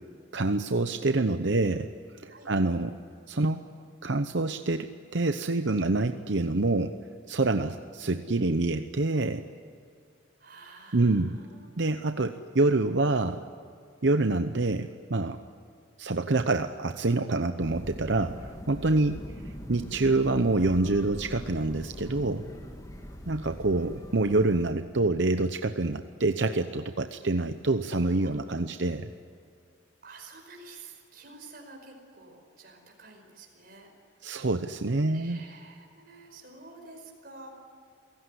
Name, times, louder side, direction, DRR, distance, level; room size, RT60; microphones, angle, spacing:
voice 1, 0.3-1.9 2.2-3.0 3.3-3.6 4.0-7.0 7.3-9.4 10.9-11.4 11.8-13.4 14.0-15.4 16.0-19.2 19.7-22.4 23.3-29.1 34.2-35.4, right 2 dB, 65° right, 8 dB, 0.8 m, -26 dB
voice 2, 10.4-11.7 19.0-19.3 22.5-22.6 28.2-28.3 30.0-33.9 34.2-34.3 35.0-37.5, right 3 dB, 50° right, 2 dB, 5.2 m, -50 dB
sound 1, 17.6-24.7, equal, 20° left, 2.2 m, -42 dB
28.5 x 17.5 x 9.9 m, 2.3 s
head